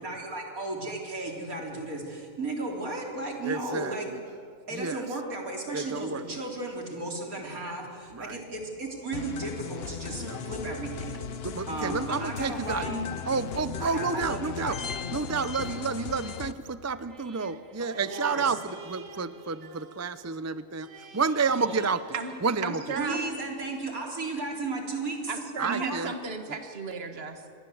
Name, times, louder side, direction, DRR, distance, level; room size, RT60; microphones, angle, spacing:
voice 1, 0.0-4.1 4.7-13.0 13.8-14.8 18.1-18.4 23.0-25.3 25.6-26.0, right 2 dB, 85° right, 1 dB, 4.1 m, -34 dB
voice 2, 3.4-4.2 4.7-5.0 5.7-6.4 8.1-8.4 10.1-10.4 11.4-12.9 13.3-14.8 15.1-22.0 22.4-22.8 25.6-26.1, right 4 dB, 20° right, 14 dB, 0.4 m, -30 dB
sound 1, 9.1-16.5, left 7 dB, 50° left, 1.0 m, -37 dB
sound 2, 15.3-23.1 23.6-23.7, right 4 dB, 65° right, 1.7 m, -49 dB
voice 3, 22.6-23.3 25.3-27.6, right 5 dB, 45° right, 6 dB, 1.8 m, -35 dB
27.0 x 22.0 x 7.9 m, 2.4 s
omnidirectional pair, 1.5 m